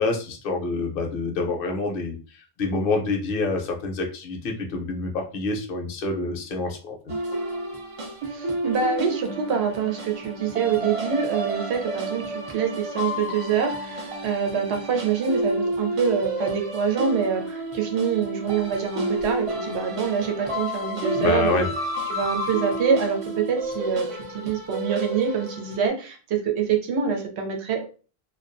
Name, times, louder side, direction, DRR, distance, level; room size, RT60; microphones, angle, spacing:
voice 1, 0.0-6.9 21.1-21.7, left 3 dB, 65° left, 3 dB, 0.7 m, -27 dB
sound 1, 7.1-25.8, right 1 dB, 50° right, 0.4 m, -30 dB
voice 2, 8.3-21.6 22.1-27.9, right 6 dB, 90° right, 3 dB, 0.9 m, -25 dB
2.3 x 2.3 x 2.4 m, 0.36 s
omnidirectional pair, 1.1 m